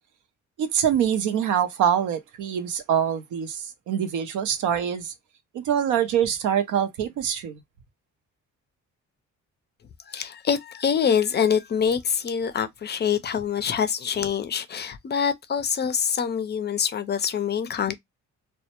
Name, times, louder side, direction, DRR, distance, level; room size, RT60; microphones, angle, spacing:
voice 1, 0.6-5.1 5.5-7.6, right 9 dB, 80° right, 0.6 m, -24 dB
voice 2, 10.1-17.9, left 7 dB, 35° left, 0.4 m, -25 dB
2.1 x 2.0 x 2.8 m
cardioid pair, 90°, 30 cm